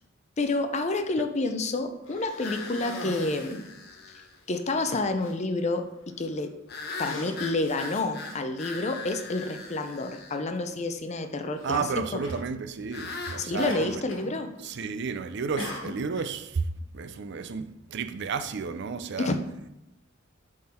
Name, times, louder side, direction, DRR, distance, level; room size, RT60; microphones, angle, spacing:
voice 1, 0.4-3.6 4.5-6.5 7.0-12.0 13.4-14.5 19.2-19.4, left 2 dB, 35° left, 0.6 m, -29 dB
Cough, 2.0-3.7 4.4-4.5 4.9-5.4 6.1-6.4 6.7-8.7 9.6-9.7 11.6-11.8 12.2-12.5 13.7-14.4 14.6-15.0 15.6-16.3, left 2 dB, 80° left, 1.4 m, -41 dB
sound 1, 2.4-4.4 6.7-10.4 12.9-13.8, left 3 dB, 55° left, 1.0 m, -39 dB
voice 2, 11.6-14.0 14.6-16.7 16.9-19.3, right 5 dB, 60° right, 0.5 m, -32 dB
7.6 x 3.8 x 4.3 m
head